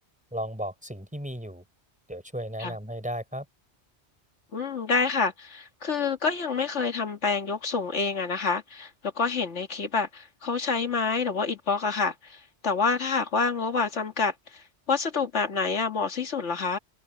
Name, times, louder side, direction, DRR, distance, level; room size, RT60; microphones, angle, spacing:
voice 1, 0.3-1.6 2.1-3.5, equal, 5° right, 4.1 m, -35 dB
voice 2, 4.5-16.8, left 4 dB, 85° left, 2.2 m, -28 dB
omnidirectional pair, 1.2 m